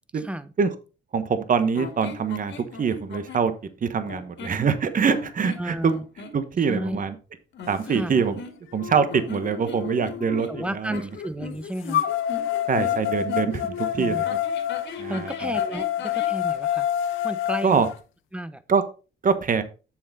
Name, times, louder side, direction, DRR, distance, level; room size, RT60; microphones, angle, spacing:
voice 1, 0.1-0.5 5.6-6.1 6.7-7.0 7.9-8.2 10.5-12.0 14.0-14.2 15.1-16.9 17.2-17.8 18.3-18.6, right 1 dB, 5° right, 14 dB, 0.8 m, -32 dB
voice 2, 1.1-3.5 3.8-6.0 6.3-7.1 7.7-8.4 8.7-11.1 12.7-14.3 15.0-15.6 17.6-17.9 18.7-18.8 19.2-19.6, right 6 dB, 45° right, 11 dB, 1.2 m, -24 dB
sound 1, 1.7-3.5 4.1-4.6 5.1-6.4 7.5-8.8 9.1-13.6 14.2-16.4, left 5 dB, 65° left, 2.0 m, -39 dB
sound 2, 8.1-8.2 8.8-10.7 11.9-17.9, left 11 dB, 85° left, 0.8 m, -28 dB
7.5 x 7.1 x 4.1 m, 0.33 s
cardioid pair, 90°, 20 cm